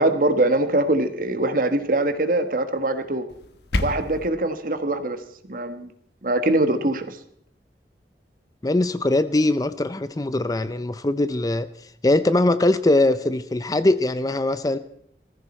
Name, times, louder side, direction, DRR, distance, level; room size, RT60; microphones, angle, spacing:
voice 1, 0.0-3.3 3.8-5.2 5.5-5.9 6.2-7.2, right 2 dB, 50° right, 9 dB, 1.3 m, -22 dB
sound 1, 3.3-4.3, left 1 dB, 70° left, 1.2 m, -28 dB
voice 2, 8.6-11.7 12.0-14.8, left 2 dB, 20° left, 13 dB, 0.5 m, -21 dB
18.5 x 15.0 x 4.4 m, 0.67 s
head